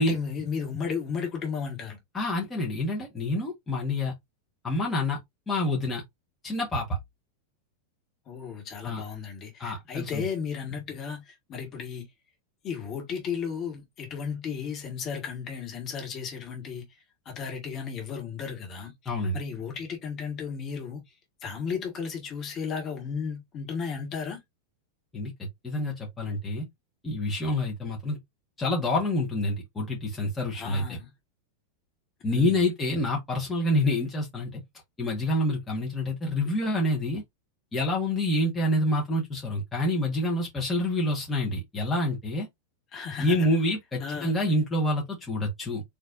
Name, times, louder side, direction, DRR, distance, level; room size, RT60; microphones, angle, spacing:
voice 1, 0.0-2.0 8.3-12.1 12.6-16.9 17.3-18.9 19.3-21.0 21.4-24.4 30.5-31.1 32.3-32.6 42.9-43.5 44.0-44.3, left 6 dB, 30° left, 1.9 m, -34 dB
voice 2, 2.1-4.1 4.6-5.2 5.5-6.0 6.4-7.0 8.8-9.0 9.6-10.2 19.0-19.4 25.1-26.6 27.0-28.2 28.6-31.0 32.2-34.6 35.0-37.2 37.7-42.5 43.2-45.8, left 1 dB, 15° left, 1.6 m, -27 dB
4.3 x 3.2 x 2.6 m
figure-of-eight pair, 90°, 0 cm